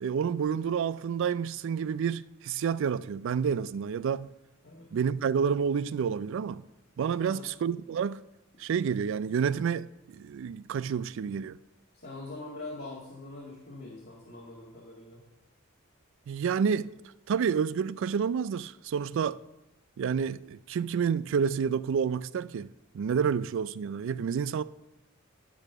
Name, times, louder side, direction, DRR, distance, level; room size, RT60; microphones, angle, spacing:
voice 1, 0.0-4.3 4.9-6.6 7.0-8.2 8.6-11.6 16.3-16.9 17.3-19.4 20.0-22.7 22.9-24.6, right 7 dB, 65° right, 0.3 m, -29 dB
voice 2, 11.9-15.2, left 2 dB, 50° left, 1.8 m, -43 dB
12.0 x 4.2 x 6.6 m
head